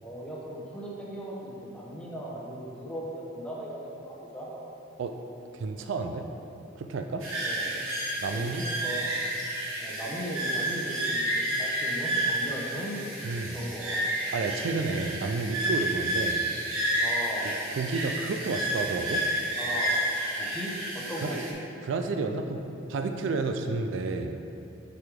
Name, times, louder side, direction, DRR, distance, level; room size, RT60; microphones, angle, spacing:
voice 1, 0.0-4.7 7.4-7.8 8.3-9.1 9.8-13.0 13.5-14.3 17.0-17.5 19.6-20.0 20.3-21.6, equal, 5° left, -5 dB, 0.9 m, -38 dB
voice 2, 5.5-6.3 6.8-7.3 8.2-8.7 13.2-13.6 14.3-16.4 17.4-19.2 21.2-21.4 21.8-24.4, right 3 dB, 65° right, 5 dB, 0.3 m, -31 dB
sound 1, 7.2-21.5, right 1 dB, 80° right, 1.2 m, -30 dB
6.5 x 5.0 x 3.6 m, 2.9 s
head